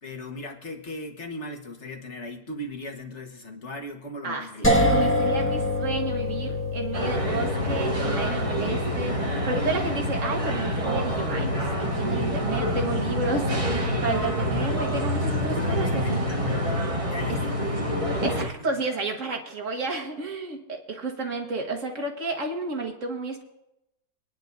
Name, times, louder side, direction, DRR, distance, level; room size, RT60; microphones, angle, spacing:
voice 1, 0.0-4.7 14.5-15.0 15.3-16.8 17.1-18.1, left 2 dB, 40° left, 2 dB, 1.6 m, -38 dB
voice 2, 4.2-16.2 17.3-17.4 18.2-23.4, right 3 dB, 45° right, 2 dB, 1.8 m, -31 dB
sound 1, 4.6-14.4, left 1 dB, 10° left, 1.3 m, -29 dB
sound 2, 6.9-18.5, equal, 25° right, 0.9 m, -27 dB
24.5 x 10.5 x 2.7 m, 0.86 s
omnidirectional pair, 2.0 m